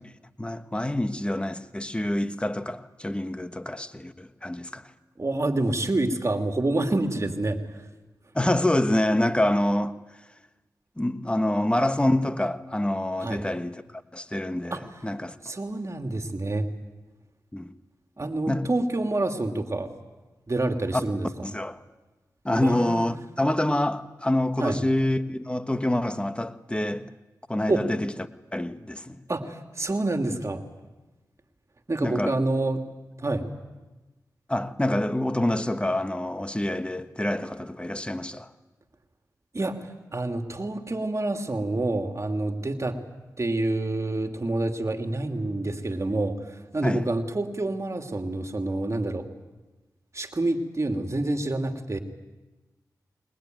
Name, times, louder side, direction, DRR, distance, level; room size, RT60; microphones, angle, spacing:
voice 1, 0.4-4.9 8.3-9.9 11.0-13.8 14.1-15.3 17.5-17.7 18.5-18.7 20.9-21.0 21.4-21.8 22.4-27.1 27.5-29.2 32.0-32.4 34.5-38.5 46.8-47.0, left 1 dB, 15° left, 1.4 m, -26 dB
voice 2, 5.2-7.8 13.2-13.4 14.7-14.8 15.4-16.7 18.2-19.9 20.5-21.5 22.6-23.1 24.6-24.8 27.7-27.8 29.3-30.6 31.9-32.8 33.2-33.5 39.5-43.0 43.4-49.3 50.1-52.0, right 2 dB, 40° right, 2.7 m, -27 dB
22.0 x 20.0 x 9.2 m
cardioid pair, 40°, 7 cm